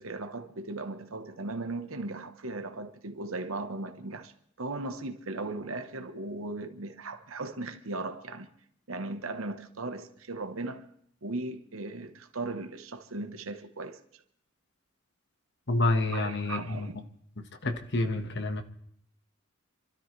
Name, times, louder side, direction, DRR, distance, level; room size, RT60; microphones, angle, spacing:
voice 1, 0.0-4.3 4.6-8.5 8.9-10.9 11.2-14.0 16.1-17.0, right 2 dB, 85° right, 1.2 m, -37 dB
voice 2, 15.7-16.9 17.6-18.6, left 2 dB, 55° left, 1.5 m, -28 dB
28.0 x 13.0 x 3.3 m
head